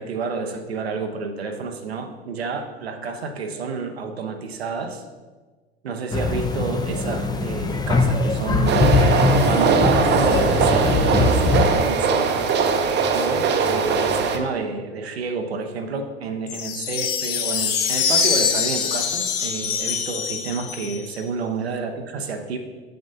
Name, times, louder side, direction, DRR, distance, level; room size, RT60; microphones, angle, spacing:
voice 1, 0.0-5.0 5.8-9.0 9.4-12.4 13.1-22.6, right 4 dB, 85° right, 5 dB, 0.8 m, -29 dB
sound 1, 6.1-11.8, left 3 dB, 15° left, 0.6 m, -21 dB
sound 2, 8.7-14.4, right 5 dB, 35° right, 0.7 m, -21 dB
sound 3, 16.5-21.2, left 6 dB, 50° left, 0.7 m, -24 dB
7.7 x 7.0 x 2.7 m, 1.3 s
hypercardioid pair, 75°, 31 cm